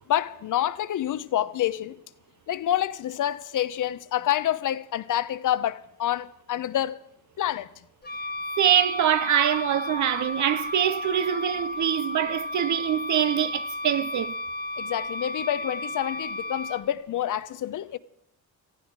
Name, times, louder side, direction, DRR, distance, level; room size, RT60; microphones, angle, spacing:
voice 1, 0.1-2.0 2.5-7.0 7.4-7.7 14.8-18.0, left 11 dB, 65° left, 0.8 m, -27 dB
Wind instrument woodwind instrument, 8.0-16.8, left 2 dB, 30° left, 0.9 m, -33 dB
voice 2, 8.6-14.3, right 10 dB, 60° right, 0.7 m, -24 dB
18.0 x 15.0 x 4.8 m
cardioid pair, 110°, 33 cm